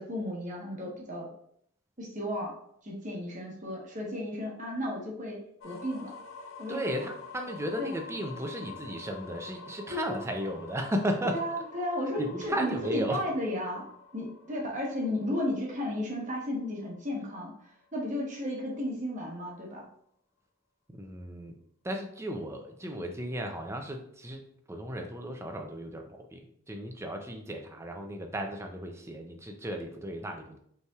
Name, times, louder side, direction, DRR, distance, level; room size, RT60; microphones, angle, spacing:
voice 1, 0.0-1.3 2.0-2.5 2.8-6.2 6.6-6.8 7.8-7.9 9.9-10.2 11.3-13.8 14.1-17.5 17.9-19.9, left 1 dB, 35° right, -2 dB, 1.1 m, -34 dB
sound 1, 5.6-17.4, left 4 dB, 65° left, 0.5 m, -48 dB
voice 2, 6.7-11.4 12.2-13.2 20.9-21.6 21.8-30.6, equal, 15° right, 4 dB, 0.4 m, -35 dB
5.3 x 3.3 x 2.4 m, 0.68 s
head